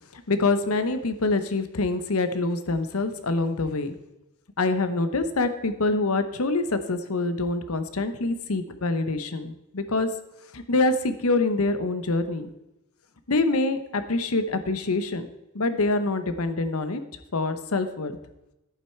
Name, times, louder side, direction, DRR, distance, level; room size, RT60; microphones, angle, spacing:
voice 1, 0.1-3.9 4.6-10.1 10.5-12.5 13.3-15.3 15.5-17.0 17.3-18.1, left 3 dB, 85° left, 10 dB, 0.9 m, -25 dB
11.0 x 8.9 x 4.5 m, 0.93 s
head